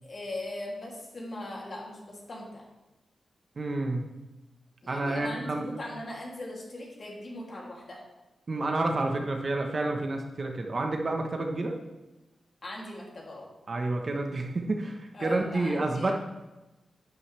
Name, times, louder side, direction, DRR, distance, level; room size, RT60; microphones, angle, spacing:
voice 1, 0.0-2.6 4.8-8.0 12.6-13.5 15.1-16.1, left 1 dB, 40° left, -3 dB, 2.9 m, -40 dB
voice 2, 3.6-4.1 4.9-5.7 8.5-11.7 13.7-16.1, right 2 dB, 40° right, 3 dB, 1.2 m, -29 dB
11.0 x 9.4 x 3.4 m, 1.0 s
wide cardioid pair, 115°, 0 cm